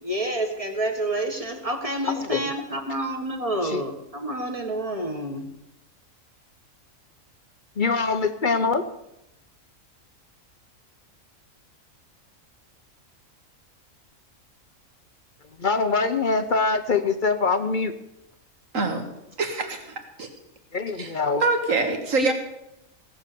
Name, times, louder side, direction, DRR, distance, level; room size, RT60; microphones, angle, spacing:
voice 1, 0.0-5.5, right 1 dB, 25° right, 4 dB, 1.6 m, -29 dB
voice 2, 2.1-2.5 3.6-3.8 7.8-8.9 15.6-17.9 20.7-21.5, left 4 dB, 45° left, 9 dB, 0.7 m, -24 dB
voice 3, 18.7-19.0 19.4-20.3 21.0-21.1 21.4-22.3, right 3 dB, 75° right, 5 dB, 2.2 m, -25 dB
17.0 x 7.3 x 6.8 m, 0.85 s
omnidirectional pair, 1.4 m